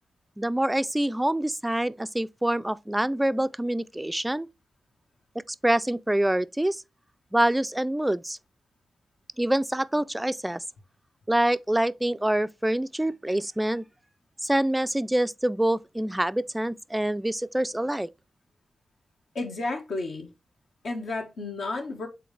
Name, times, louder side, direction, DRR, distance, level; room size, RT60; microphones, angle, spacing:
voice 1, 0.4-4.5 5.6-6.8 7.3-8.4 9.4-10.6 11.3-13.8 14.4-18.1, right 1 dB, 10° right, 0.3 m, -26 dB
voice 2, 19.3-20.3 20.8-22.1, left 2 dB, 75° left, 1.5 m, -32 dB
7.6 x 3.9 x 3.2 m
cardioid pair, 65°, 0 cm